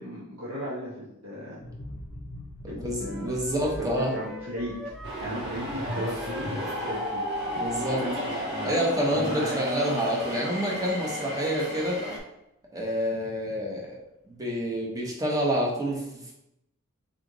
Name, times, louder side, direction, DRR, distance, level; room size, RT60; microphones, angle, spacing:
voice 1, 0.0-1.6 2.7-3.4 3.8-4.7 5.2-7.2 7.8-8.7 9.1-9.6, equal, 80° right, -8 dB, 1.2 m, -36 dB
sound 1, 1.6-9.0 9.3-9.5, left 1 dB, 50° left, 0.6 m, -42 dB
voice 2, 2.7-4.1 7.5-8.0 8.6-12.0 12.7-13.9 14.3-16.3, equal, 15° right, -3 dB, 1.0 m, -28 dB
sound 2, 3.0-8.1, equal, ahead, 0.4 m, -42 dB
sound 3, 5.0-12.2, equal, 50° right, 1.1 m, -33 dB
4.0 x 3.3 x 3.9 m, 0.85 s
head